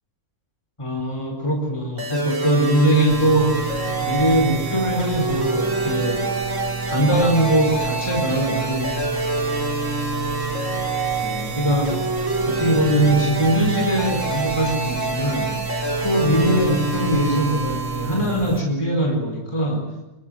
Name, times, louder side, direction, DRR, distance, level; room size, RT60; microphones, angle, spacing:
voice 1, 0.8-3.6 4.0-6.2 6.9-8.9 11.2-12.0 12.5-15.5 16.0-19.9, right 1 dB, 20° left, 1 dB, 4.7 m, -21 dB
sound 1, 2.0-18.4, right 3 dB, 55° right, 3.8 m, -26 dB
sound 2, 3.1-18.6, right 5 dB, 75° right, 2.3 m, -32 dB
28.5 x 21.0 x 7.8 m, 0.97 s
omnidirectional pair, 1.6 m